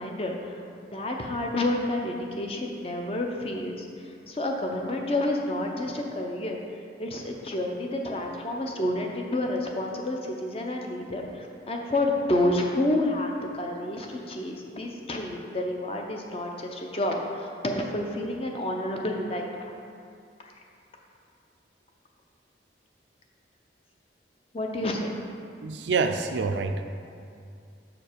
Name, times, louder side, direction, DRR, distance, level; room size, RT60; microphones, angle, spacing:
voice 1, 0.0-6.6 7.0-19.7 24.5-25.1, left 1 dB, 30° left, 1 dB, 0.6 m, -29 dB
voice 2, 25.6-26.8, right 4 dB, 80° right, 7 dB, 0.4 m, -26 dB
6.7 x 5.2 x 4.5 m, 2.4 s
head